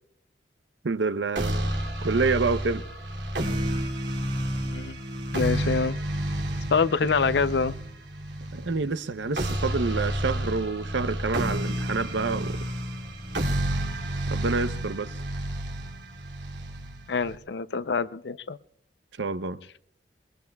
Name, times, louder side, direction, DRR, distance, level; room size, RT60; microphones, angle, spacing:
voice 1, 0.8-1.7 2.0-2.8 7.0-7.1 8.5-12.6 14.3-15.1 19.2-19.6, right 4 dB, 90° right, 0.7 m, -28 dB
sound 1, 1.4-17.4, right 1 dB, 75° right, 2.6 m, -30 dB
voice 2, 4.6-5.0 5.3-6.0 6.7-7.8 17.1-18.6, left 5 dB, 70° left, 0.5 m, -25 dB
22.0 x 22.0 x 2.3 m
head